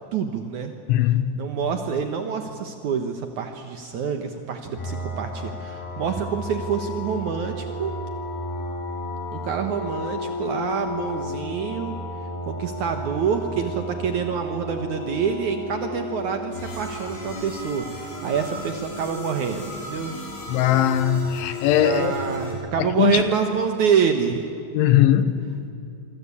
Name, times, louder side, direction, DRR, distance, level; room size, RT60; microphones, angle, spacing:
voice 1, 0.1-0.7 1.3-7.9 9.3-12.0 12.4-20.1 21.8-24.5, right 7 dB, 85° right, 1.7 m, -26 dB
voice 2, 0.9-1.4 20.5-22.1 22.8-23.2 24.7-25.5, left 11 dB, 80° left, 3.5 m, -20 dB
sound 1, 4.8-22.5, left 1 dB, 55° left, 7.0 m, -33 dB
26.0 x 25.5 x 8.5 m
omnidirectional pair, 5.5 m